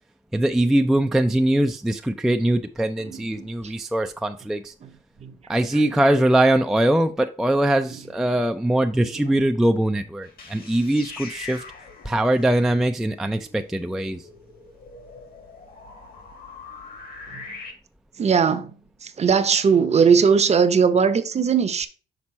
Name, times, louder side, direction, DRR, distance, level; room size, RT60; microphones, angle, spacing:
voice 1, 0.3-4.7 5.5-11.6 12.0-14.2, right 1 dB, ahead, 0.3 m, -22 dB
voice 2, 3.0-3.7 4.8-4.9 5.2-5.4 5.7-5.9 9.0-9.3 17.3-17.5 18.2-18.7 19.0-21.9, right 6 dB, 35° right, 0.7 m, -20 dB
sound 1, 10.2-17.7, left 4 dB, 50° left, 1.6 m, -42 dB
6.1 x 4.2 x 4.2 m
cardioid pair, 120°, 19 cm